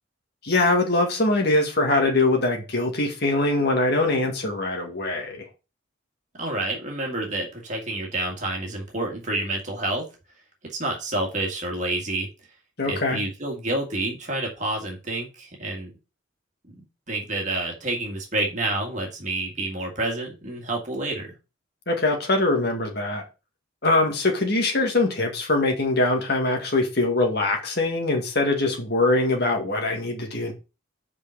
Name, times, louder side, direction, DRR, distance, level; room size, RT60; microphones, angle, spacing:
voice 1, 0.4-5.5 12.8-13.2 21.9-23.2 23.8-30.5, left 2 dB, 55° left, 1.8 m, -22 dB
voice 2, 6.4-10.0 10.7-12.3 12.9-15.9 17.1-21.3, right 2 dB, 40° right, 1.9 m, -28 dB
5.5 x 4.8 x 6.3 m
head